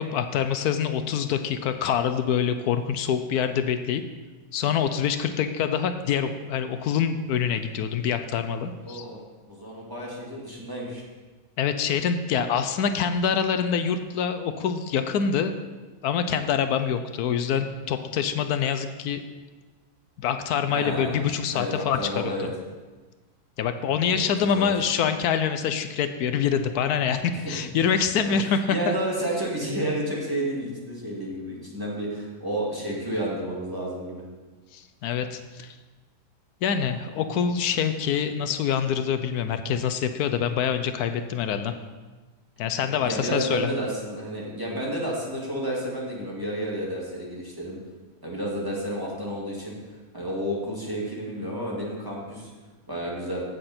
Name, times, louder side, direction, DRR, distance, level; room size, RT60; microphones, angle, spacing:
voice 1, 0.0-4.0 4.5-9.0 11.6-15.6 16.0-19.2 20.2-22.5 23.6-28.6 28.9-29.0 34.7-35.8 36.6-41.7 42.6-43.7, left 7 dB, 80° left, 9 dB, 1.1 m, -25 dB
voice 2, 8.9-9.2 9.5-11.0 20.7-21.2 21.5-22.5 23.9-24.2 24.5-24.7 27.3-27.5 28.2-34.2 43.0-47.8 48.2-49.7 50.1-52.5 52.9-53.4, right 1 dB, 15° right, -5 dB, 2.3 m, -31 dB
15.5 x 6.6 x 4.3 m, 1.3 s
omnidirectional pair, 1.6 m